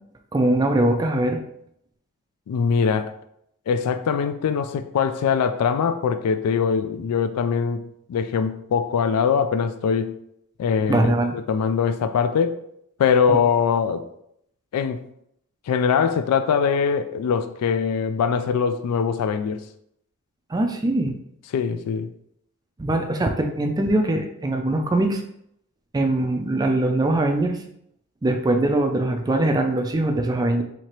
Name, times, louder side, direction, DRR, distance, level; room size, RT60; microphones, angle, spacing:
voice 1, 0.3-1.4 10.9-11.4 20.5-21.2 22.8-25.2 25.9-27.6 28.2-30.6, right 1 dB, 15° right, 4 dB, 0.3 m, -22 dB
voice 2, 2.5-3.1 3.7-10.2 10.6-12.6 13.0-14.1 14.7-15.0 15.7-19.6 21.5-22.1, left 6 dB, 90° left, 10 dB, 0.3 m, -22 dB
4.3 x 2.8 x 3.0 m, 0.73 s
head